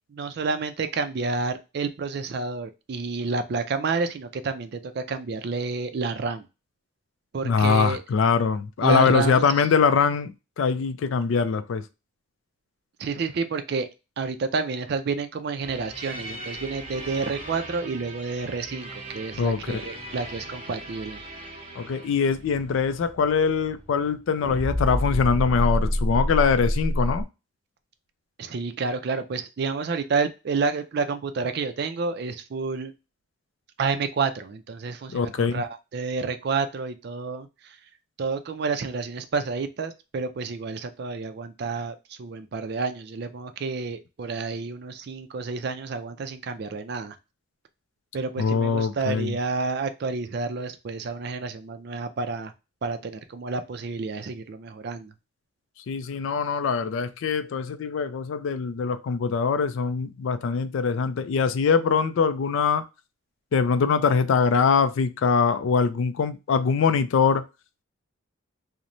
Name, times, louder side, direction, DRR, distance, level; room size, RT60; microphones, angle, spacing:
voice 1, 0.1-6.4 7.3-8.0 8.8-9.4 13.0-13.9 14.2-21.2 28.4-32.9 33.8-37.8 38.2-47.2 48.1-52.5 52.8-55.1, right 4 dB, 50° right, 0.4 m, -29 dB
voice 2, 7.4-11.8 19.4-19.8 21.8-27.2 35.1-35.6 48.4-49.4 55.9-62.9 63.5-67.4, left 5 dB, 70° left, 0.3 m, -23 dB
sound 1, 15.6-24.2 24.4-27.2, equal, 30° right, 0.8 m, -31 dB
2.9 x 2.1 x 2.5 m
head